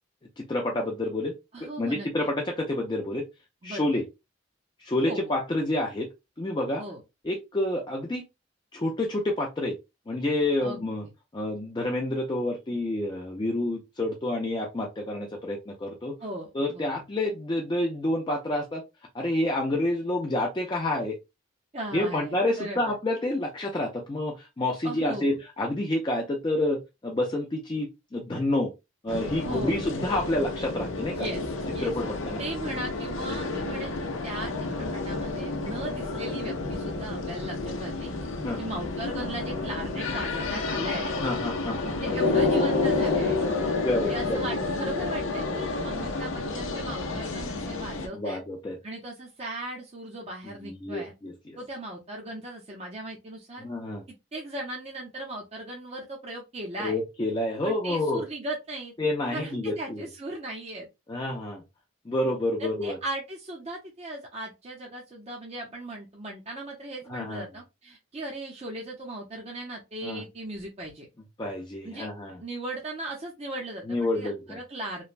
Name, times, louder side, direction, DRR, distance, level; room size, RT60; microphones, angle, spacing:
voice 1, 0.4-3.2 3.6-4.0 4.8-6.1 6.4-6.8 7.2-8.2 8.7-9.8 10.1-11.0 11.3-16.1 16.5-18.8 19.1-21.2 21.9-28.7 29.0-31.3 31.8-32.4 38.4-38.6 41.2-42.1 43.8-44.4 48.1-48.8 50.6-51.6 53.6-54.0 56.8-58.2 59.0-60.1 61.1-61.6 62.1-63.0 67.1-67.4 70.0-70.2 71.4-72.4 73.9-74.6, left 1 dB, 20° left, 1 dB, 0.4 m, -29 dB
voice 2, 1.5-2.1 3.6-4.0 5.0-5.3 6.8-7.0 10.6-10.8 16.2-17.1 21.7-23.0 24.8-25.4 29.4-29.8 31.1-31.4 31.7-31.9 32.4-34.0 34.2-38.1 38.6-41.2 42.0-43.4 44.1-48.4 48.8-51.1 51.6-53.7 54.3-57.0 57.6-58.9 59.3-60.9 62.6-71.1 71.8-72.1 72.4-75.0, right 1 dB, 30° right, -1 dB, 0.6 m, -37 dB
sound 1, 29.1-48.1, left 3 dB, 70° left, 0.6 m, -30 dB
3.1 x 2.1 x 2.4 m, 0.24 s
head